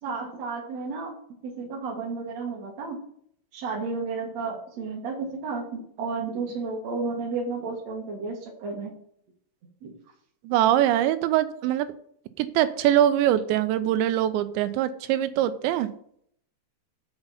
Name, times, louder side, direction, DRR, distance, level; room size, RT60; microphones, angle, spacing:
voice 1, 0.0-1.1 1.4-3.0 3.5-8.9 9.8-9.9, right 4 dB, 55° right, -2 dB, 2.1 m, -32 dB
voice 2, 10.4-11.9 12.4-15.9, right 12 dB, 90° right, 12 dB, 2.9 m, -23 dB
7.0 x 5.5 x 7.0 m, 0.66 s
omnidirectional pair, 5.0 m